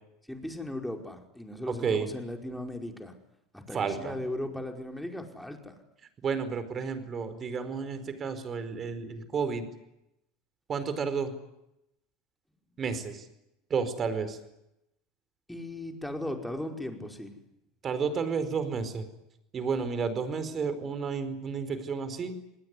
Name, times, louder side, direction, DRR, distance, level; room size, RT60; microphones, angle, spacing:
voice 1, 0.3-3.1 3.5-5.7 15.5-17.4, left 1 dB, 5° left, 3 dB, 5.0 m, -37 dB
voice 2, 1.7-2.1 3.7-4.1 6.2-9.6 10.7-11.3 12.8-13.2 13.7-14.4 17.8-19.1 19.5-22.3, right 5 dB, 35° right, 11 dB, 4.7 m, -31 dB
27.5 x 20.0 x 9.8 m, 0.87 s
hypercardioid pair, 80°, 0 cm